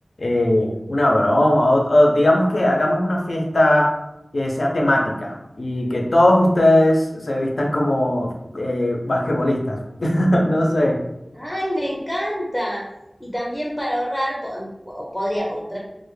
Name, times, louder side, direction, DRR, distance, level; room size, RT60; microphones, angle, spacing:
voice 1, 0.2-3.9 4.3-11.0, left 1 dB, 80° left, 0 dB, 0.4 m, -19 dB
voice 2, 11.3-12.8 13.2-15.8, equal, 10° left, -4 dB, 0.5 m, -26 dB
2.1 x 2.0 x 3.0 m, 0.90 s
wide cardioid pair, 45°, 0 cm